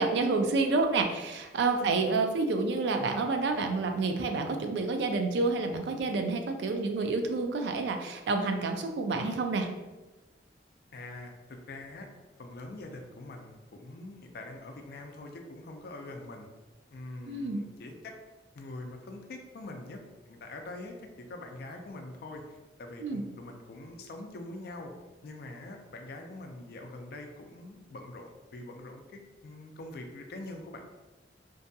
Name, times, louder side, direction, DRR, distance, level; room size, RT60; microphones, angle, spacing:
voice 1, 0.0-9.7 17.3-17.6 23.0-23.2, right 3 dB, 70° right, 5 dB, 0.3 m, -29 dB
voice 2, 10.9-12.1 12.4-16.5 16.9-18.1 18.5-24.9 25.2-30.8, left 2 dB, 60° left, 3 dB, 0.4 m, -44 dB
2.6 x 2.2 x 2.6 m, 1.1 s
head